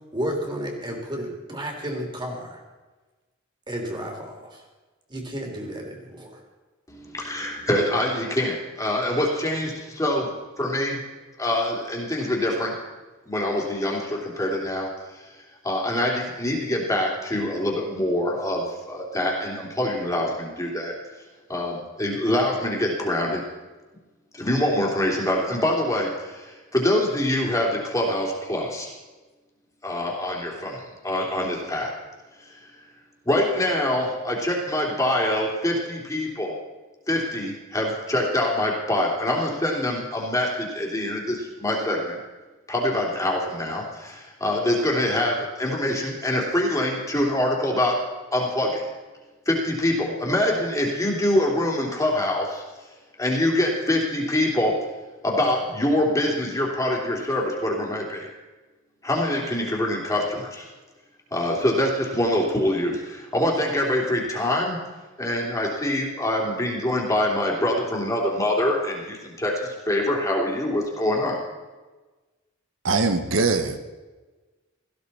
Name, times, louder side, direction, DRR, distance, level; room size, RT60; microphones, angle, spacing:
voice 1, 0.1-2.6 3.7-4.6 5.1-6.4, equal, 25° right, 1 dB, 3.1 m, -32 dB
voice 2, 6.9-10.3 10.6-11.0 11.4-12.8 13.2-15.2 15.6-20.9 21.5-23.4 24.3-28.9 29.8-31.9 32.4-32.7 33.2-36.6 37.1-42.2 42.7-48.0 48.3-48.8 49.4-52.6 53.2-54.8 55.2-58.3 59.0-60.7 61.3-64.8 65.2-71.4, left 1 dB, 15° left, -2 dB, 3.0 m, -25 dB
voice 3, 72.8-73.8, right 3 dB, 80° right, 8 dB, 1.1 m, -22 dB
17.0 x 15.5 x 4.3 m, 1.2 s
head